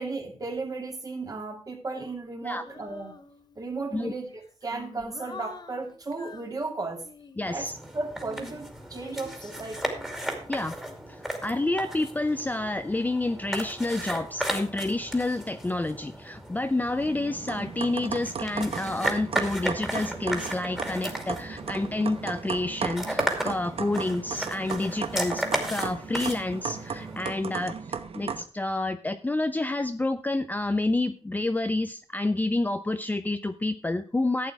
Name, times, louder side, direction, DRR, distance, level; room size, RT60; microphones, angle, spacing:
voice 1, 0.0-3.1 3.6-7.0 7.4-9.9, right 3 dB, 30° right, 3 dB, 2.4 m, -35 dB
Female singing, 2.6-3.7 4.3-7.6 8.1-11.3, left 4 dB, 40° left, 1.1 m, -47 dB
voice 2, 7.4-7.8 10.5-10.8 11.1-34.5, left 2 dB, 15° left, 10 dB, 0.5 m, -29 dB
sound 1, 7.5-27.3, right 1 dB, 5° right, 2.4 m, -35 dB
sound 2, 17.0-28.4, right 6 dB, 55° right, 1.0 m, -36 dB
11.5 x 8.4 x 4.7 m, 0.39 s
wide cardioid pair, 105°, 12 cm